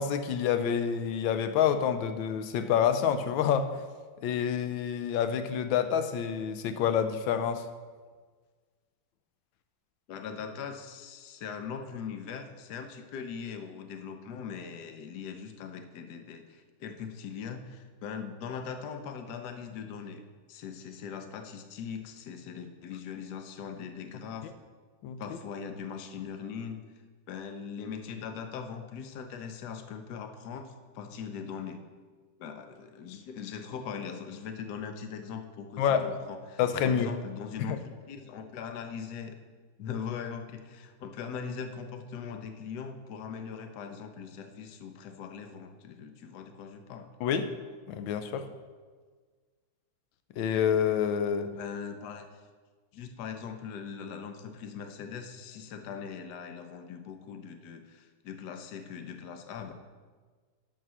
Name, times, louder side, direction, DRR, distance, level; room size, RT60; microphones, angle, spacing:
voice 1, 0.0-3.8 4.2-7.7 25.0-25.2 35.8-36.1 36.6-37.1 37.6-37.8 47.2-47.5 47.9-48.5 50.4-51.5, left 8 dB, 90° left, 9 dB, 1.4 m, -27 dB
voice 2, 10.1-20.2 20.5-24.5 25.2-26.8 27.3-31.8 32.4-36.6 36.8-39.3 39.8-47.1 51.5-52.3 52.9-59.7, left 6 dB, 65° left, 6 dB, 1.3 m, -40 dB
11.5 x 4.7 x 6.1 m, 1.5 s
omnidirectional pair, 2.1 m